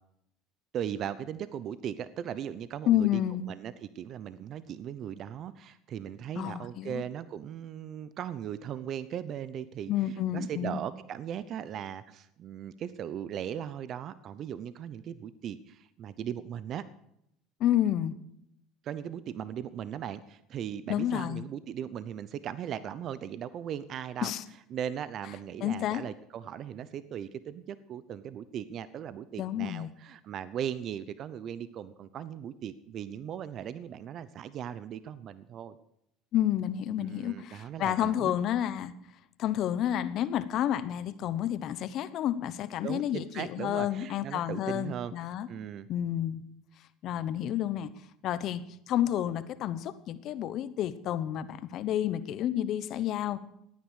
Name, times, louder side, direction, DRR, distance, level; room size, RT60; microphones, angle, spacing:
voice 1, 0.7-3.2 3.5-9.9 10.3-16.8 18.8-24.3 24.7-35.8 37.0-38.4 42.8-45.1 45.5-45.9, right 9 dB, 50° right, 15 dB, 0.7 m, -38 dB
voice 2, 2.9-3.5 6.3-7.0 9.9-10.8 17.6-18.1 20.9-21.4 24.2-24.4 25.6-26.0 29.4-29.9 36.3-38.9 39.4-45.5 45.9-46.4 47.0-47.9 48.2-53.4, left 11 dB, 55° left, 14 dB, 1.0 m, -30 dB
15.0 x 9.5 x 6.5 m, 0.76 s
supercardioid pair, 95°, 0 cm